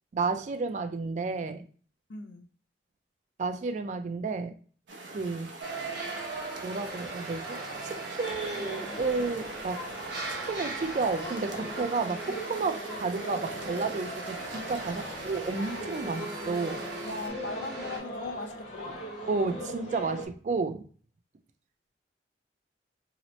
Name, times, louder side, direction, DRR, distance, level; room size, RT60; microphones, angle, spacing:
voice 1, 0.1-1.6 3.4-4.6 5.1-5.5 6.6-9.9 10.4-16.9 19.3-20.9, right 4 dB, 40° right, 0.3 m, -32 dB
voice 2, 2.1-2.5 15.0-15.2 17.0-19.0, left 2 dB, 75° left, 0.5 m, -39 dB
sound 1, 4.9-17.3, right 2 dB, 90° right, 0.6 m, -45 dB
sound 2, 5.6-18.0, right 3 dB, 60° right, 0.9 m, -39 dB
sound 3, 8.2-20.3, equal, 40° left, 0.8 m, -40 dB
2.9 x 2.0 x 4.0 m
head